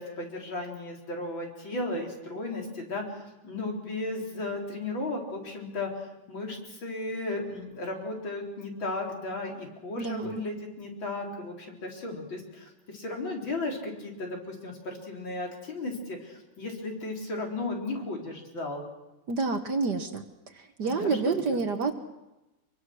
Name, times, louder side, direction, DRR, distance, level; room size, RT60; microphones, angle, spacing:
voice 1, 0.0-5.9 6.3-18.8 20.8-21.4, left 2 dB, 60° left, 0 dB, 4.7 m, -35 dB
voice 2, 10.0-10.4 19.3-20.2 20.8-21.9, right 4 dB, 55° right, 7 dB, 1.6 m, -28 dB
25.0 x 23.5 x 6.3 m, 0.99 s
omnidirectional pair, 2.4 m